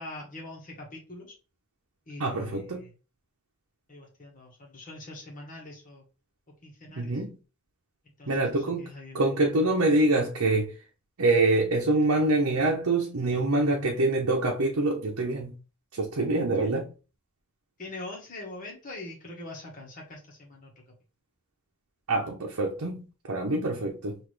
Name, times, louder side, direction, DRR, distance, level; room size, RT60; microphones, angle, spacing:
voice 1, 0.0-1.4 2.1-2.9 3.9-6.0 6.6-7.1 8.2-9.2 16.6-16.7 17.8-20.8, left 2 dB, 35° left, 1.3 m, -43 dB
voice 2, 2.2-2.8 7.0-7.4 8.3-8.9 9.1-10.8 11.2-15.5 15.9-16.9 22.1-24.2, right 2 dB, 75° right, 0.8 m, -25 dB
5.9 x 2.6 x 3.3 m
head